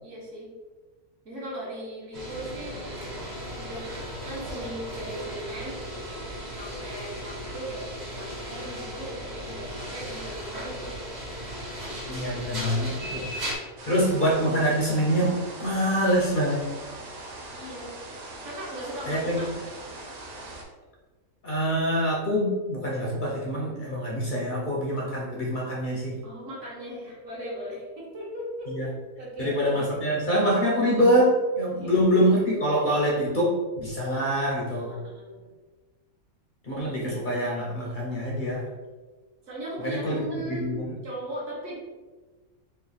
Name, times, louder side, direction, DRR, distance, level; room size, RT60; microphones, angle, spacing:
voice 1, 0.0-0.5 1.2-2.8 3.5-4.0 4.2-5.8 6.5-10.9 12.5-13.4 17.5-17.9 18.4-19.5 26.2-28.7 29.2-29.9 31.7-31.9 34.7-35.5 39.4-40.7 41.0-41.8, right 1 dB, 55° right, -5 dB, 1.3 m, -38 dB
sound 1, 2.1-13.5, equal, 35° right, 0.8 m, -36 dB
voice 2, 12.1-13.3 13.9-16.7 19.1-19.4 21.4-26.2 28.7-28.9 29.4-34.9 36.6-38.7 39.8-40.2 40.5-40.9, equal, 55° left, -4 dB, 0.6 m, -25 dB
sound 2, 13.8-20.6, right 2 dB, 90° right, 1.2 m, -41 dB
3.2 x 2.4 x 3.9 m, 1.3 s
omnidirectional pair, 1.5 m